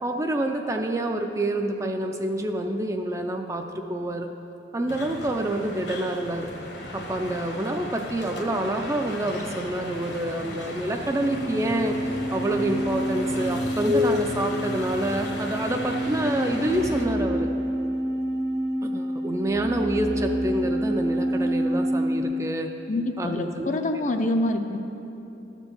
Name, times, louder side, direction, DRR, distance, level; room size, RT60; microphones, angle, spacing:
voice 1, 0.0-4.3 4.7-6.5 6.9-12.0 12.3-17.5 18.8-22.7 23.2-23.7 24.0-24.1, right 1 dB, 15° right, 4 dB, 0.4 m, -27 dB
sound 1, 4.9-17.1, left 1 dB, 65° left, 1.2 m, -36 dB
sound 2, 11.0-22.2, equal, 70° right, 1.0 m, -27 dB
voice 2, 22.9-24.8, left 2 dB, 40° left, 6 dB, 0.5 m, -26 dB
13.0 x 4.5 x 6.9 m, 3.0 s
head